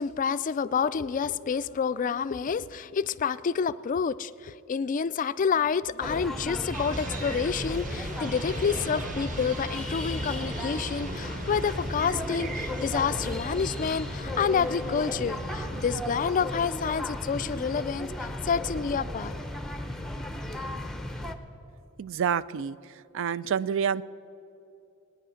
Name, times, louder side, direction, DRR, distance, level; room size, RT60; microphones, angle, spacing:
voice 1, 0.0-19.4, left 6 dB, 40° left, 15 dB, 0.3 m, -28 dB
sound 1, 6.0-21.3, left 1 dB, ahead, 0.7 m, -35 dB
sound 2, 6.7-16.0, right 1 dB, 40° right, 0.9 m, -38 dB
voice 2, 22.0-22.8 23.1-24.0, right 7 dB, 65° right, 18 dB, 0.4 m, -27 dB
18.5 x 10.0 x 6.3 m, 2.8 s
head